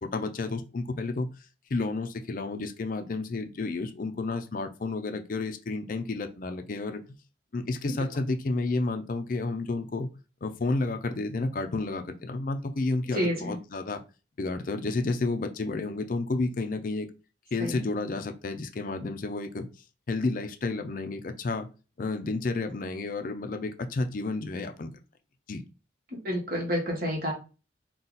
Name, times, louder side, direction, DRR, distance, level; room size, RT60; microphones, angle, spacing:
voice 1, 0.0-1.3 1.7-7.0 7.5-10.1 10.4-14.0 14.4-17.1 17.5-19.7 20.1-21.7 22.0-24.9 25.5-25.6, left 3 dB, 50° left, 7 dB, 0.5 m, -31 dB
voice 2, 13.1-13.5 17.6-17.7 26.2-27.3, equal, 50° right, -1 dB, 1.5 m, -28 dB
4.1 x 2.4 x 3.9 m, 0.31 s
head